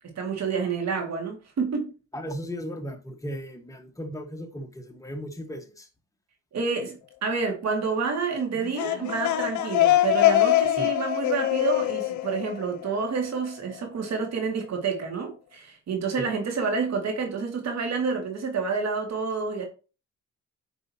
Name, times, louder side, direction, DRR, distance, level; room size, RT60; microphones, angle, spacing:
voice 1, 0.2-1.9 6.5-19.7, right 5 dB, 60° right, 2.3 m, -29 dB
voice 2, 2.1-5.9 10.8-10.9 16.2-16.3, equal, 10° left, 1.5 m, -36 dB
sound 1, 8.6-13.3, left 14 dB, 75° left, 0.9 m, -24 dB
9.0 x 5.4 x 2.9 m
cardioid pair, 90°, 30 cm